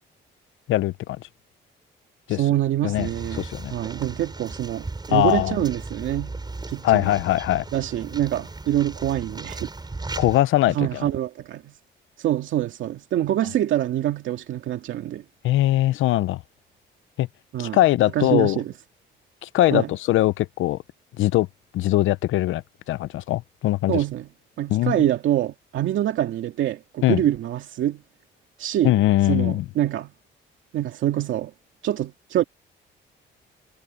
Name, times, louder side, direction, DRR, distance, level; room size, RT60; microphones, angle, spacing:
voice 1, 0.7-1.2 2.3-2.4 2.8-3.1 3.3-3.7 5.1-5.6 6.8-7.6 10.2-11.0 15.4-16.4 17.2-17.3 17.6-18.6 19.4-20.8 21.2-21.5 21.7-22.6 22.9-24.0 24.7-25.0 27.0-27.2 28.8-29.6, left 15 dB, 85° left, 0.8 m, -21 dB
voice 2, 2.3-6.3 6.7-7.1 7.7-9.7 10.7-11.7 12.2-15.2 17.5-17.8 18.1-18.7 19.7-19.9 23.9-24.3 24.6-28.0 28.6-28.9 29.3-30.1 30.7-31.5 31.8-32.4, right 12 dB, 80° right, 2.3 m, -25 dB
sound 1, 2.9-10.4, right 3 dB, 20° right, 6.4 m, -36 dB
cardioid pair, 90°, 20 cm